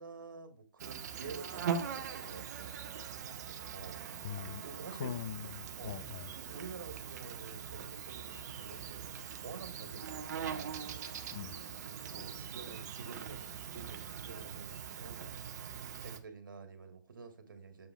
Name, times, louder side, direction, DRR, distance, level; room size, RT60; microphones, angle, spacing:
voice 1, 0.0-2.7 3.7-4.0 4.6-5.1 5.8-6.1 6.3-9.0 9.4-10.9 12.1-15.2 15.9-17.9, right 5 dB, 75° right, 2.0 m, -49 dB
Insect, 0.8-16.2, right 7 dB, 55° right, 1.2 m, -42 dB
voice 2, 4.2-6.3 11.3-11.6, left 9 dB, 55° left, 0.5 m, -42 dB
9.8 x 7.0 x 2.3 m
hypercardioid pair, 130°, 11 cm